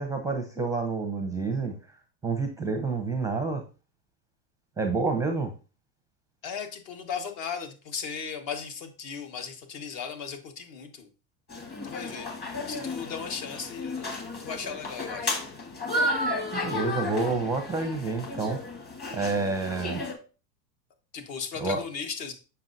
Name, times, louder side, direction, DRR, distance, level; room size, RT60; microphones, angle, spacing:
voice 1, 0.0-1.7 2.2-3.6 4.8-5.5 16.5-18.6 19.1-20.0 21.6-21.8, right 3 dB, 5° right, 5 dB, 0.6 m, -28 dB
voice 2, 6.4-11.1 11.8-12.3 12.7-15.4 21.1-22.3, left 6 dB, 45° left, 6 dB, 1.5 m, -36 dB
sound 1, 11.5-20.1, left 1 dB, 20° left, 1.5 m, -33 dB
7.2 x 5.7 x 2.7 m, 0.33 s
hypercardioid pair, 120°, 49 cm